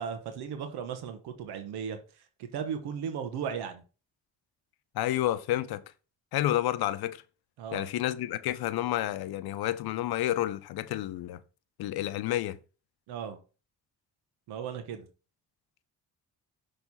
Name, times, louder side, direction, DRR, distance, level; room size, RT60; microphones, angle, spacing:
voice 1, 0.0-2.0 2.5-3.8 7.6-7.9 13.1-13.4 14.5-15.1, right 7 dB, 85° right, 1.1 m, -36 dB
voice 2, 4.9-5.8 6.3-7.2 7.7-11.4 11.8-12.6, left 13 dB, 75° left, 0.6 m, -30 dB
6.1 x 3.4 x 5.4 m
supercardioid pair, 60°, 38 cm